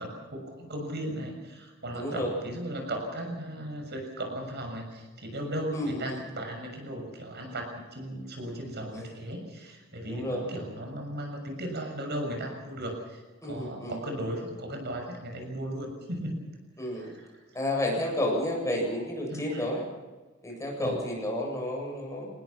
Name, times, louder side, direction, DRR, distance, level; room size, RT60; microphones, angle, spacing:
voice 1, 0.0-16.4 16.8-17.4 19.3-19.7 20.8-21.0, right 1 dB, 55° right, 3 dB, 6.6 m, -36 dB
voice 2, 1.9-2.3 5.7-6.1 10.1-10.4 13.4-14.0 16.8-17.1 17.5-19.8 20.4-22.3, left 1 dB, 15° left, -1 dB, 7.7 m, -31 dB
27.0 x 20.5 x 5.9 m, 1.3 s
head